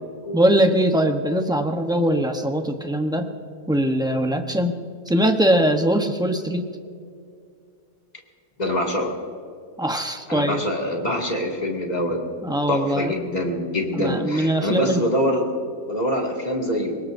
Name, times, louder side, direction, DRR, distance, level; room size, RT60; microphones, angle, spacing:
voice 1, 0.3-3.3 3.7-4.8 5.1-6.7 9.8-10.6 12.4-13.1 13.9-15.0, right 1 dB, 5° right, 4 dB, 0.4 m, -21 dB
voice 2, 8.6-9.1 10.3-12.2 12.7-17.0, left 1 dB, 25° left, 0 dB, 2.3 m, -25 dB
25.0 x 21.5 x 2.6 m, 2.3 s
omnidirectional pair, 1.8 m